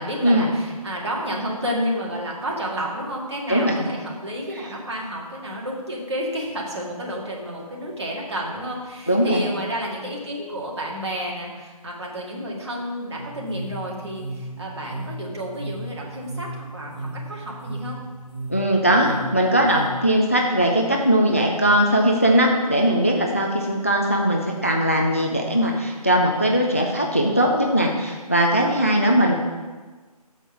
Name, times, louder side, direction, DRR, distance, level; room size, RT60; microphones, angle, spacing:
voice 1, 0.0-18.0, equal, 45° right, -3 dB, 2.0 m, -30 dB
voice 2, 9.1-9.4 18.5-29.3, equal, 20° left, 1 dB, 0.4 m, -20 dB
sound 1, 13.1-19.9, right 2 dB, 45° left, 2.7 m, -35 dB
7.1 x 5.3 x 6.0 m, 1.3 s
figure-of-eight pair, 160°, 20 cm